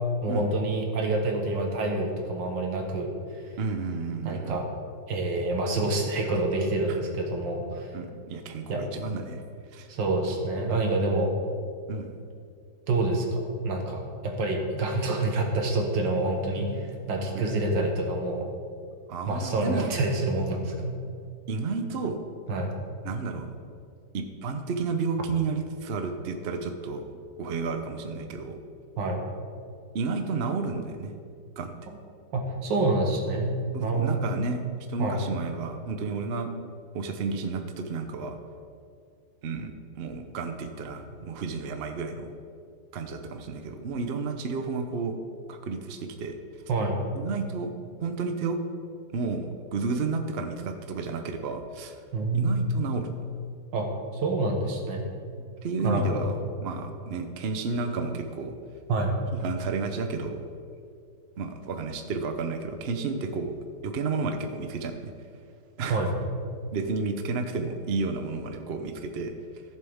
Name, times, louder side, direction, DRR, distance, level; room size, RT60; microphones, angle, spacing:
voice 1, 0.2-3.1 4.3-4.7 5.1-7.9 8.7-8.8 9.9-11.3 12.9-18.5 19.3-21.0 22.5-22.7 29.0-29.2 32.3-34.3 35.0-35.2 46.7-47.2 52.1-52.8 53.7-53.9 54.1-55.1 55.8-56.4 58.9-59.2 65.9-66.1, right 2 dB, 85° right, 2 dB, 2.0 m, -27 dB
voice 2, 3.6-4.6 6.9-7.0 7.9-9.4 9.7-9.9 11.9-12.1 17.3-17.5 19.1-19.9 21.5-22.2 23.0-23.5 24.1-28.6 29.9-31.1 31.6-31.7 33.7-36.5 36.9-38.4 39.4-42.3 42.9-45.2 45.5-46.4 47.1-47.7 48.0-48.6 49.1-52.0 52.3-53.1 55.6-56.3 56.6-58.5 59.4-60.4 61.4-63.5 63.8-65.1 65.8-66.0 66.7-69.3, right 4 dB, 55° right, 6 dB, 0.7 m, -31 dB
15.0 x 7.5 x 3.6 m, 2.3 s
omnidirectional pair, 2.0 m